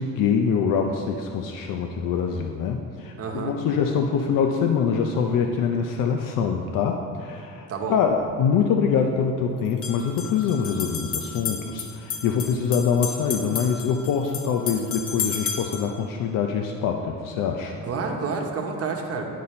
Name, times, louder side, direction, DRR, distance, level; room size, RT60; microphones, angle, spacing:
voice 1, 0.0-17.8, left 6 dB, 75° left, 3 dB, 0.6 m, -24 dB
voice 2, 3.2-3.5 7.7-8.0 17.8-19.3, right 5 dB, 45° right, 2 dB, 1.0 m, -29 dB
sound 1, 8.0-8.1 9.7-15.9, left 6 dB, 45° left, 0.9 m, -33 dB
11.5 x 4.2 x 4.3 m, 2.5 s
cardioid pair, 140°, 33 cm